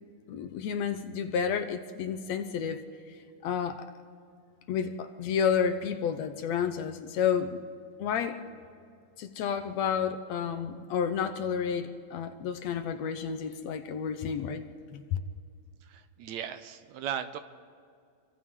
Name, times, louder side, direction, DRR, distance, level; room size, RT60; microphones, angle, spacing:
voice 1, 0.3-2.8 3.1-3.2 3.4-3.9 4.7-7.6 8.0-8.4 9.2-14.6 14.9-15.0, left 7 dB, 70° left, 8 dB, 1.9 m, -30 dB
voice 2, 15.8-17.4, right 9 dB, 75° right, 10 dB, 1.9 m, -37 dB
29.0 x 24.5 x 3.7 m, 2.3 s
omnidirectional pair, 3.5 m